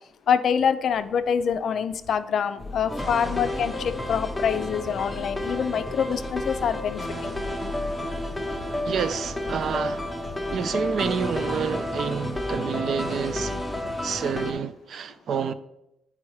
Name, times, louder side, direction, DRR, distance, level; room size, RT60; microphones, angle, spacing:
voice 1, 0.3-7.4, left 7 dB, 60° left, 0.4 m, -25 dB
sound 1, 2.6-14.6, left 3 dB, 25° left, 0.7 m, -39 dB
sound 2, 2.9-14.5, left 1 dB, ahead, 0.9 m, -31 dB
voice 2, 8.8-10.1 10.5-13.5 14.0-15.5, right 7 dB, 60° right, 0.4 m, -28 dB
9.6 x 4.7 x 3.1 m
cardioid pair, 90°, 0 cm